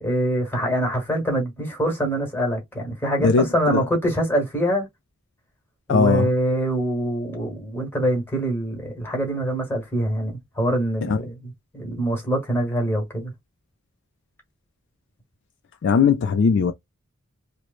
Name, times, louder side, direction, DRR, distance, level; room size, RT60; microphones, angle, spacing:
voice 1, 0.0-4.9 5.9-13.3, right 1 dB, 10° left, 1.2 m, -24 dB
voice 2, 3.2-3.8 5.9-6.3 11.0-11.2 15.8-16.7, left 5 dB, 55° left, 0.3 m, -19 dB
3.1 x 2.0 x 2.4 m
head